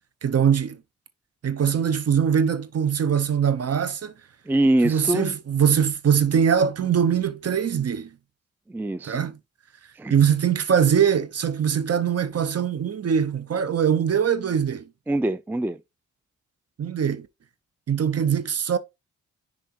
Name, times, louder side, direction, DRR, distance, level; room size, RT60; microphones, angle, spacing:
voice 1, 0.2-0.8 1.4-4.1 4.8-8.2 9.0-9.4 10.1-14.9 16.8-17.3 17.9-18.8, right 8 dB, 50° right, 0.9 m, -22 dB
voice 2, 4.5-5.4 8.7-9.2 10.0-10.1 15.1-15.8, right 1 dB, 5° right, 0.4 m, -23 dB
10.0 x 3.5 x 2.9 m
supercardioid pair, 50°, 32 cm